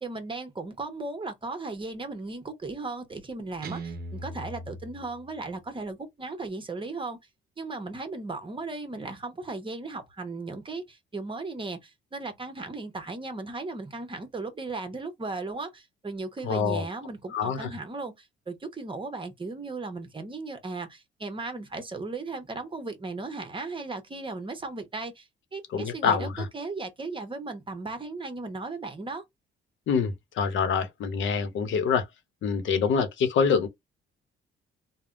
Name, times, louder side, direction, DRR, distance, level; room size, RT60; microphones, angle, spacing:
voice 1, 0.0-7.2 7.6-29.2, right 3 dB, 25° right, 0.9 m, -36 dB
Guitar, 3.6-5.7, right 2 dB, 50° right, 0.7 m, -40 dB
voice 2, 16.4-16.8 17.3-17.7 25.7-26.5 29.9-32.0 32.4-33.7, left 6 dB, 75° left, 0.8 m, -25 dB
3.3 x 2.1 x 2.5 m
cardioid pair, 90°, 20 cm